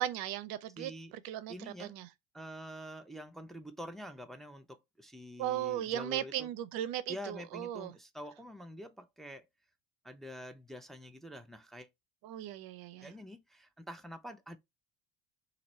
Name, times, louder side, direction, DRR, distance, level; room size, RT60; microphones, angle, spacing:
voice 1, 0.0-0.9 1.2-1.5 1.8-2.1 5.4-7.9 12.2-13.1, right 12 dB, 60° right, 0.6 m, -36 dB
voice 2, 0.8-1.1 1.5-1.9 2.3-6.5 7.1-9.5 10.0-11.9 13.0-14.6, equal, ahead, 0.7 m, -46 dB
3.0 x 2.6 x 4.1 m
hypercardioid pair, 70°, 40 cm